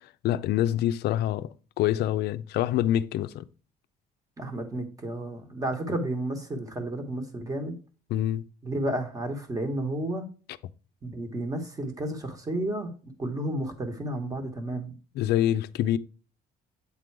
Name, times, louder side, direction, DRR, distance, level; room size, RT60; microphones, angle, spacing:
voice 1, 0.2-3.4 8.1-8.4 15.2-16.0, left 12 dB, 70° left, 0.4 m, -26 dB
voice 2, 4.4-7.7 8.6-10.3 11.0-14.9, right 1 dB, 20° right, 1.3 m, -32 dB
8.4 x 3.8 x 4.6 m
cardioid pair, 145°, 18 cm